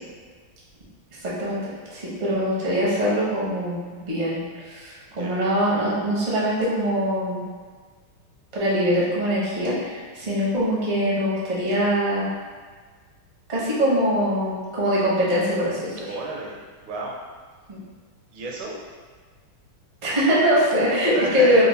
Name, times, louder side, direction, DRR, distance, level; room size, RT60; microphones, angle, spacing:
voice 1, 1.2-1.6 1.9-4.4 4.7-7.4 8.5-12.3 13.5-16.2 17.7-17.8 20.0-21.7, equal, 55° right, -7 dB, 0.4 m, -22 dB
voice 2, 16.1-16.6 16.8-17.2 18.3-18.7 20.7-20.8 21.1-21.7, right 3 dB, 75° right, -3 dB, 1.3 m, -32 dB
3.7 x 2.1 x 4.0 m, 1.5 s
omnidirectional pair, 2.4 m